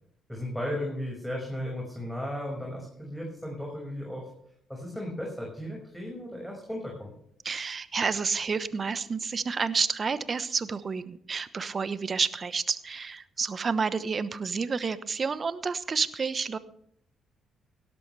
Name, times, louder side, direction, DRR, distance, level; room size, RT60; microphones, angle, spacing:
voice 1, 0.3-4.3 4.7-7.1, left 1 dB, ahead, -1 dB, 5.8 m, -35 dB
voice 2, 7.4-16.6, right 5 dB, 45° right, 15 dB, 1.1 m, -30 dB
18.0 x 13.0 x 3.4 m, 0.69 s
supercardioid pair, 55°, 0 cm